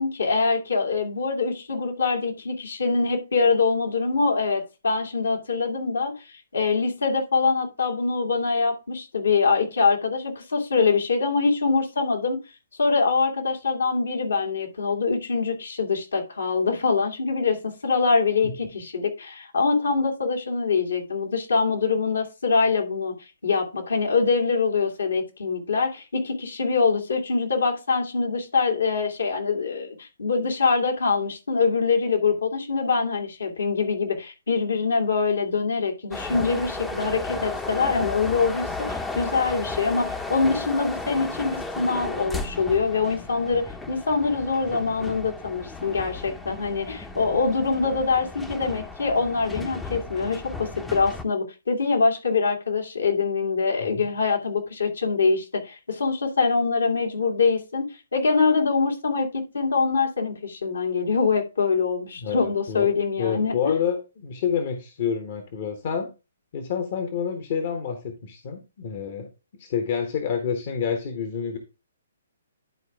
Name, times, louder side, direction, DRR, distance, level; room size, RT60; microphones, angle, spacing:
voice 1, 0.0-12.4 12.8-23.1 23.4-63.5, left 4 dB, 70° left, 2.4 m, -24 dB
sound 1, 36.1-51.2, left 3 dB, 5° left, 0.8 m, -34 dB
voice 2, 62.2-66.1 66.5-69.3 69.6-71.6, left 7 dB, 45° left, 1.3 m, -28 dB
11.0 x 4.7 x 3.6 m
figure-of-eight pair, 125°, 0 cm